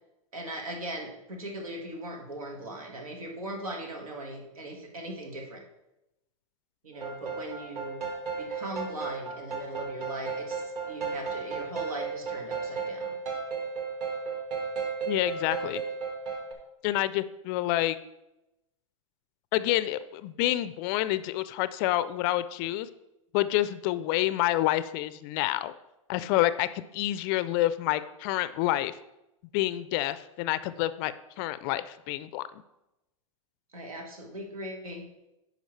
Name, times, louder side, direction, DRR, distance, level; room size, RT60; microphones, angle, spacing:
voice 1, 0.3-5.6 6.8-8.1 8.4-13.1 26.2-26.5 33.7-35.1, right 1 dB, 85° right, 2 dB, 1.7 m, -39 dB
sound 1, 7.0-16.5, right 5 dB, 40° right, 1.5 m, -34 dB
voice 2, 15.1-15.8 16.8-18.0 19.5-22.9 23.3-25.7 26.1-26.7 26.9-29.0 29.5-32.5, left 15 dB, 40° left, 15 dB, 0.4 m, -28 dB
10.5 x 5.0 x 3.2 m, 0.94 s
hypercardioid pair, 115°, 18 cm